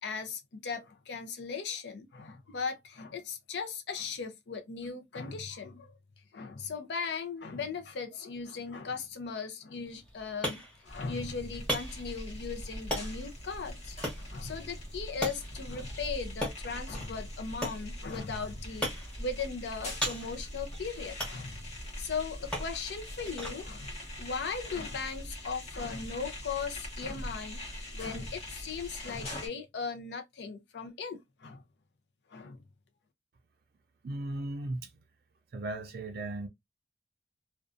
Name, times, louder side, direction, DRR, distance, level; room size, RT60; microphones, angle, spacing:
voice 1, 0.0-5.9 6.3-18.9 19.2-21.6 22.0-23.9 24.2-27.6 27.9-31.6 32.3-32.6, left 5 dB, 75° left, 0.5 m, -38 dB
sound 1, 9.8-25.4, equal, 5° left, 1.0 m, -41 dB
sound 2, 10.9-29.5, left 1 dB, 40° left, 1.0 m, -42 dB
voice 2, 34.0-34.9 35.5-36.5, right 2 dB, 60° right, 0.4 m, -36 dB
2.5 x 2.2 x 2.4 m
head